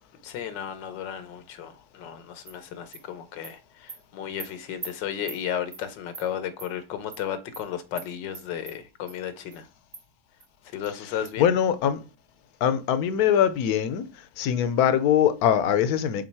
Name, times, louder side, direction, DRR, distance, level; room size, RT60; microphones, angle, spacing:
voice 1, 0.2-9.7 10.7-11.5, left 9 dB, 85° left, 1.5 m, -34 dB
Animal, 2.5-2.6 2.9-3.0 3.4-3.5 3.9-4.0 4.4-4.5 4.8-4.9 5.3-5.4 5.7-5.8 6.1-6.3 6.6-6.7 7.1-7.2 7.5-7.6 8.0-8.1 8.3-8.7 9.1-9.2 9.5-9.6 9.9-10.0 10.4-10.5 10.8-10.9 11.2-11.3, right 4 dB, 40° right, 1.3 m, -40 dB
voice 2, 11.4-12.0 12.6-16.2, left 9 dB, 70° left, 1.0 m, -22 dB
6.2 x 3.8 x 4.6 m
omnidirectional pair, 1.9 m